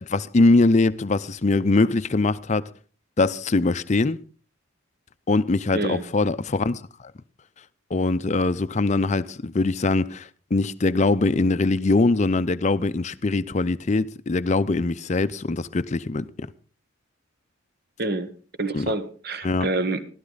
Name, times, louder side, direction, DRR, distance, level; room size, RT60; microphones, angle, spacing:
voice 1, 0.0-2.7 3.2-4.2 5.3-6.8 7.9-16.5 18.7-18.9 19.4-19.7, left 3 dB, 35° left, 0.5 m, -22 dB
voice 2, 18.0-18.3 18.6-20.0, right 2 dB, 50° right, 1.2 m, -27 dB
15.0 x 12.5 x 4.0 m
head